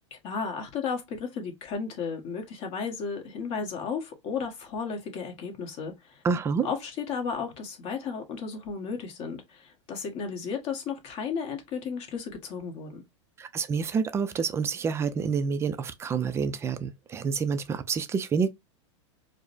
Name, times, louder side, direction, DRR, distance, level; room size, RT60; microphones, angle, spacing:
voice 1, 0.2-6.2 6.6-13.0, left 5 dB, 40° left, 1.2 m, -34 dB
voice 2, 6.2-6.7 13.4-18.5, right 5 dB, 15° right, 0.4 m, -28 dB
4.8 x 2.1 x 2.5 m
supercardioid pair, 140°, 16 cm